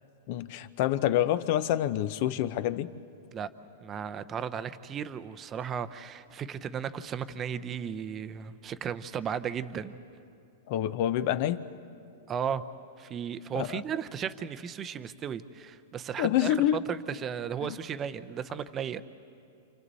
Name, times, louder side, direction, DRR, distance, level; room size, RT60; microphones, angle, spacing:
voice 1, 0.3-2.9 10.7-11.6 13.6-13.8 16.2-16.8 17.6-17.7, left 12 dB, 45° left, 13 dB, 0.8 m, -27 dB
voice 2, 3.8-10.0 12.3-12.7 13.0-19.0, right 8 dB, 20° right, 12 dB, 0.7 m, -35 dB
29.0 x 28.5 x 4.1 m, 2.5 s
supercardioid pair, 150°, 0 cm